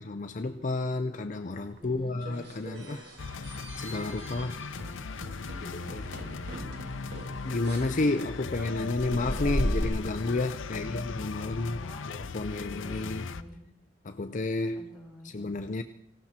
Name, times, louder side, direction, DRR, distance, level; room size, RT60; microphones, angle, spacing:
voice 1, 0.0-3.2 3.4-4.6 5.9-6.1 7.4-13.2 14.0-14.8 15.2-15.8, left 2 dB, 40° left, 8 dB, 0.6 m, -31 dB
voice 2, 1.8-2.1 5.5-5.9 6.1-6.8 10.6-11.1 11.4-12.1 12.7-13.6 14.7-15.3, left 1 dB, ahead, -2 dB, 4.2 m, -48 dB
sound 1, 1.8-3.2 3.5-3.9 4.2-4.3 4.8-9.8, equal, 60° right, 2.0 m, -36 dB
sound 2, 2.7-8.5, right 2 dB, 80° right, 2.6 m, -50 dB
sound 3, 3.2-13.4, left 4 dB, 85° left, 0.6 m, -38 dB
19.5 x 17.0 x 4.3 m, 0.78 s
head